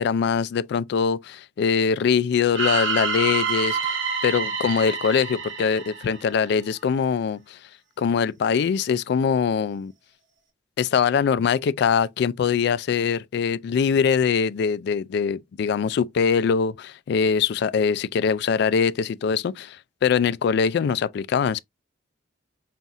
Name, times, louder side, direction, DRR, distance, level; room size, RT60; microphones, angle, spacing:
voice 1, 0.0-3.9 4.2-7.6 8.0-9.9 10.8-21.6, left 6 dB, 65° left, 0.3 m, -23 dB
sound 1, 2.5-6.6, right 5 dB, 85° right, 1.3 m, -27 dB
5.5 x 2.4 x 2.5 m
head